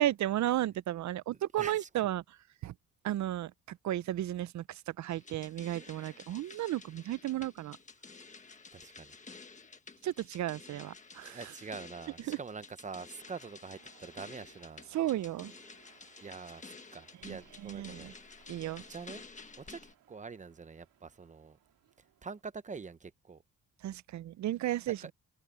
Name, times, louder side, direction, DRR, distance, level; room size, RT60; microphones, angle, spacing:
voice 1, 0.0-2.2 2.6-2.7 3.0-7.8 10.0-11.4 12.3-12.4 14.9-15.5 17.2-18.1 18.5-18.8 23.8-25.1, right 13 dB, 55° right, 0.5 m, -34 dB
voice 2, 1.3-2.1 5.7-6.3 8.7-9.2 11.1-14.8 16.2-18.1 18.9-19.3 19.6-19.8 20.1-21.6 22.2-23.4 24.9-25.1, right 5 dB, 20° right, 0.7 m, -45 dB
sound 1, 5.1-19.9, left 4 dB, 20° left, 1.4 m, -52 dB
sound 2, 13.0-22.4, right 10 dB, 80° right, 2.3 m, -65 dB
wide cardioid pair, 170°, 34 cm